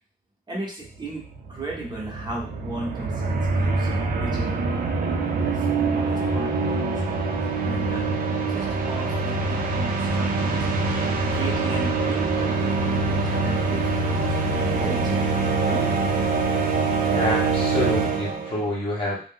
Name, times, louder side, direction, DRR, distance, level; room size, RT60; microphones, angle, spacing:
voice 1, 0.5-7.0 7.6-10.7 11.3-14.4 14.7-15.2 15.6-15.9, right 2 dB, 25° right, -5 dB, 0.9 m, -36 dB
sound 1, 1.0-1.1 1.2-18.7, right 3 dB, 60° right, 0.5 m, -24 dB
voice 2, 17.1-19.2, left 2 dB, 30° left, -4 dB, 1.1 m, -27 dB
2.4 x 2.1 x 3.6 m, 0.40 s
wide cardioid pair, 120°, 17 cm